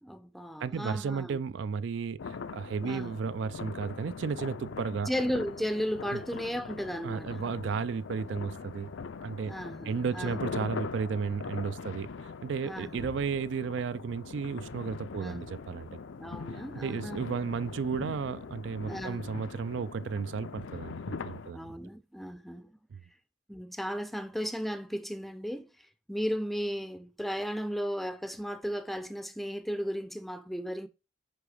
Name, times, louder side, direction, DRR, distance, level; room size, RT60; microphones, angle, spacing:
voice 1, 0.0-1.4 2.8-3.2 4.9-7.4 9.5-10.4 12.6-13.0 15.2-15.4 16.2-17.3 18.9-19.3 21.5-22.8 23.5-30.9, equal, ahead, 0.5 m, -35 dB
voice 2, 0.6-5.1 6.1-6.2 7.0-8.9 9.2-9.5 9.9-16.0 16.7-21.7 22.9-23.0, right 5 dB, 60° right, 0.3 m, -33 dB
sound 1, 2.2-21.5, left 5 dB, 65° left, 0.5 m, -41 dB
9.9 x 3.6 x 4.9 m
head